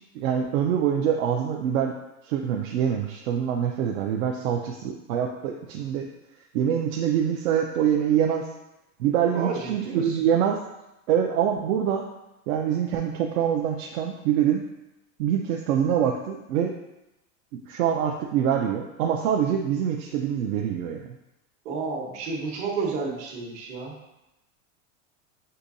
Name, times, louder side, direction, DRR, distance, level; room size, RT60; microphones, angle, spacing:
voice 1, 0.1-1.9 2.2-6.1 6.5-8.5 9.0-10.6 11.1-12.0 12.5-14.6 15.2-16.7 17.7-21.0, right 9 dB, 75° right, 2 dB, 0.6 m, -25 dB
voice 2, 9.3-10.2 21.6-24.0, right 4 dB, 55° right, 0 dB, 1.1 m, -31 dB
6.6 x 2.7 x 2.6 m, 0.94 s
supercardioid pair, 170°, 42 cm